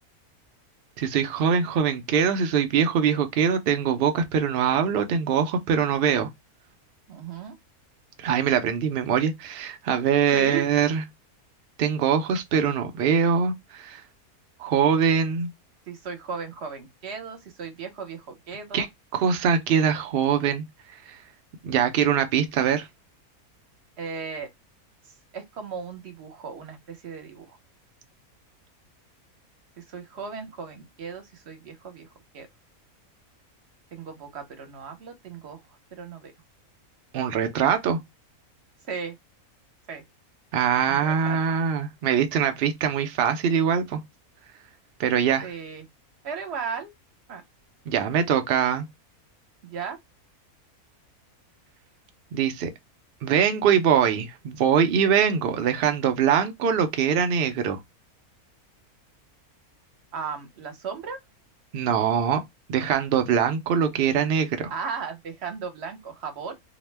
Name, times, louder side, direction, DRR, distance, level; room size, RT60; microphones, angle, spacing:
voice 1, 1.0-6.3 8.2-11.0 11.8-14.0 14.6-15.5 18.7-18.9 19.1-20.6 21.1-21.2 21.6-22.9 37.1-38.0 40.5-44.0 45.0-45.5 47.9-48.8 52.3-52.7 53.2-57.8 61.7-62.4 62.7-64.7, right 7 dB, 85° right, 0.5 m, -23 dB
voice 2, 7.1-7.5 10.3-10.7 15.9-18.9 24.0-24.5 25.3-27.6 29.8-32.1 32.3-32.5 33.9-35.6 35.9-36.3 38.9-39.2 39.9-40.0 40.9-41.4 45.4-45.8 46.2-46.9 47.3-47.4 49.6-50.0 60.1-61.2 64.7-66.6, right 5 dB, 55° right, 0.9 m, -36 dB
2.8 x 2.0 x 3.2 m
omnidirectional pair, 1.6 m